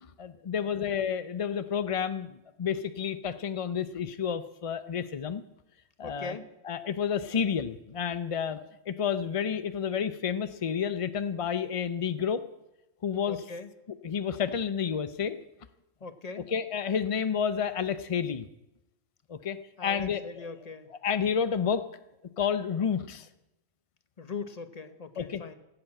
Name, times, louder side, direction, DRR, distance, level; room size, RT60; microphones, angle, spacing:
voice 1, 0.2-2.3 2.6-5.4 6.0-6.3 6.6-8.6 8.9-12.4 13.0-13.4 14.0-15.4 16.5-18.5 19.3-20.5 21.0-21.8 22.4-23.3 25.2-25.4, left 7 dB, 55° left, 11 dB, 0.3 m, -30 dB
voice 2, 6.0-6.5 13.3-13.7 16.0-16.5 19.8-20.9 24.2-25.6, left 4 dB, 35° left, 10 dB, 1.0 m, -41 dB
15.5 x 7.9 x 8.8 m, 0.93 s
omnidirectional pair, 1.3 m